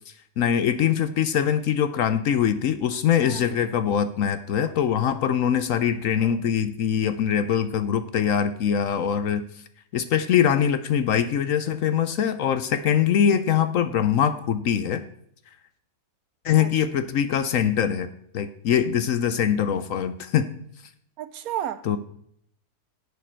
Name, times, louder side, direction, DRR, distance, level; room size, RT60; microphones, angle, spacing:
voice 1, 0.4-9.4 9.9-15.0 16.4-18.1 18.3-20.5 21.8-22.0, left 8 dB, 65° left, 0.9 m, -23 dB
voice 2, 21.2-21.8, right 11 dB, 70° right, 1.0 m, -32 dB
10.5 x 8.5 x 4.4 m
omnidirectional pair, 1.7 m